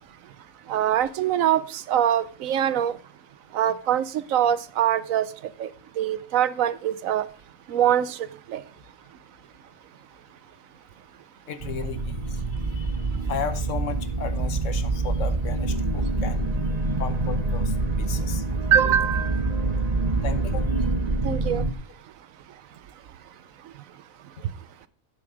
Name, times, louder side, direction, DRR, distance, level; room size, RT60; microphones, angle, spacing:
voice 1, 0.7-3.0 3.5-5.3 5.6-5.7 6.0-7.2 7.7-8.2 8.5-8.6 18.7-19.4 21.2-21.7, right 10 dB, 75° right, 16 dB, 1.0 m, -23 dB
voice 2, 11.5-16.4 17.0-17.7 18.0-18.4 20.2-20.7, left 7 dB, 65° left, 12 dB, 1.3 m, -35 dB
sound 1, 11.6-21.7, right 3 dB, 30° right, 1.1 m, -26 dB
10.0 x 6.9 x 4.9 m, 0.38 s
omnidirectional pair, 1.4 m